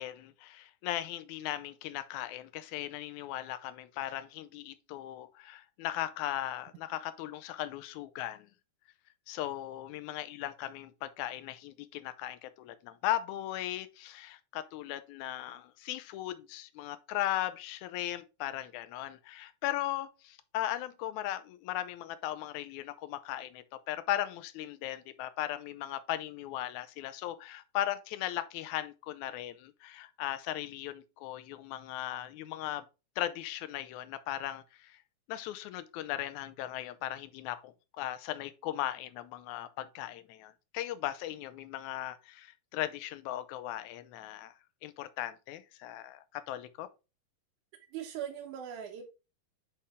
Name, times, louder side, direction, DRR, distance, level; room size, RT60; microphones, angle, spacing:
voice 1, 0.0-8.5 9.3-32.9 33.2-35.0 35.3-44.5 44.8-46.9, left 13 dB, 80° left, 2.0 m, -37 dB
voice 2, 47.9-49.0, right 9 dB, 85° right, 2.2 m, -40 dB
8.3 x 3.4 x 3.5 m
omnidirectional pair, 3.4 m